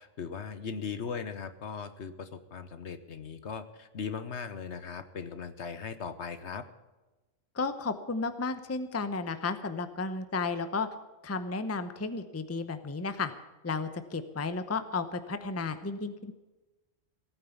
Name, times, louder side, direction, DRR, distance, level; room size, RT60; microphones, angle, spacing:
voice 1, 0.0-6.6, left 6 dB, 60° left, 11 dB, 1.2 m, -38 dB
voice 2, 7.5-10.9 11.2-13.3 13.6-16.3, left 4 dB, 15° left, 10 dB, 0.7 m, -33 dB
17.5 x 9.2 x 7.1 m, 1.1 s
omnidirectional pair, 1.4 m